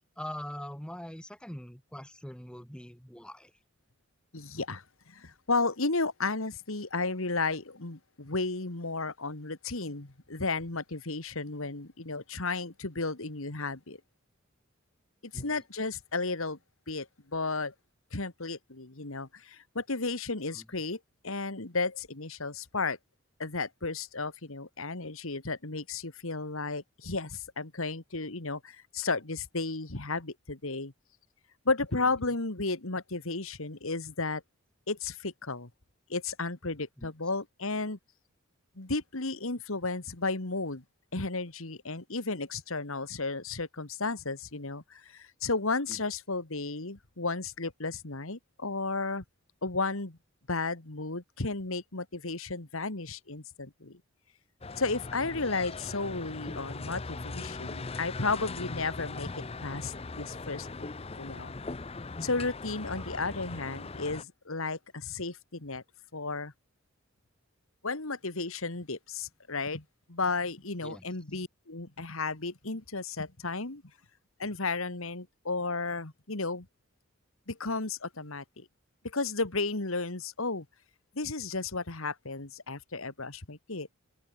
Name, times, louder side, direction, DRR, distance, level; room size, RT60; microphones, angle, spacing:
voice 1, 0.2-3.5 15.3-15.5 20.5-20.7 32.2-32.3 37.0-37.1 45.9-46.0 63.0-63.1 70.8-71.0, equal, 5° left, 2.1 m, -43 dB
voice 2, 4.3-14.0 15.2-16.6 16.9-17.7 18.1-23.0 23.4-30.9 31.7-34.4 34.9-35.7 36.1-38.0 38.8-40.8 41.1-49.2 49.6-50.2 50.5-54.0 54.8-59.3 59.6-60.9 61.2-61.5 62.2-65.8 66.1-66.5 67.8-69.8 70.1-73.8 74.4-76.7 77.5-78.7 79.0-80.7 81.2-83.9, left 3 dB, 75° left, 2.1 m, -33 dB
sound 1, 54.6-64.2, left 3 dB, 25° left, 0.6 m, -40 dB
open air
head